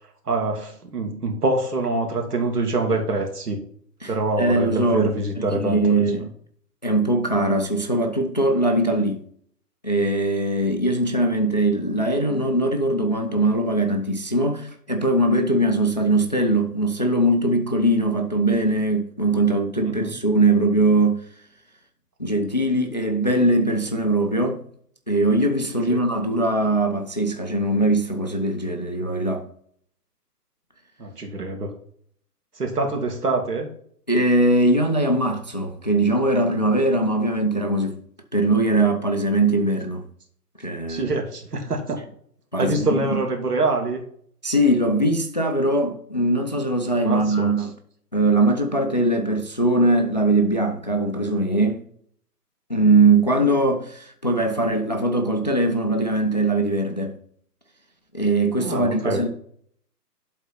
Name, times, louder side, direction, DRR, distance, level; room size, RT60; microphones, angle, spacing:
voice 1, 0.3-3.6 4.1-5.8 19.8-20.1 25.9-26.0 31.0-31.7 32.6-33.7 40.9-42.0 42.6-44.0 47.0-47.5 58.6-59.2, right 2 dB, 70° right, 2.2 m, -25 dB
voice 2, 4.0-6.3 6.8-9.2 9.8-21.3 22.2-24.6 25.1-29.5 34.1-38.0 38.3-40.1 40.6-41.1 42.5-43.2 44.4-47.7 48.1-51.8 52.7-57.2 58.1-59.3, right 2 dB, 30° left, 0.4 m, -21 dB
12.0 x 4.1 x 4.2 m
figure-of-eight pair, 130°, 48 cm